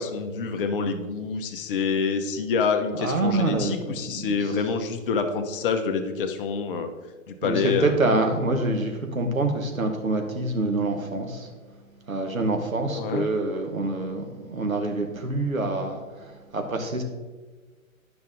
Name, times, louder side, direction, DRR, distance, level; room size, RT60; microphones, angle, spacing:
voice 1, 0.0-6.9 7.3-7.9 12.9-13.3, left 5 dB, 40° left, 7 dB, 0.9 m, -27 dB
voice 2, 2.9-4.3 7.4-11.5 12.1-17.0, right 2 dB, 85° right, 4 dB, 1.4 m, -26 dB
10.0 x 6.0 x 3.8 m, 1.3 s
figure-of-eight pair, 120°, 41 cm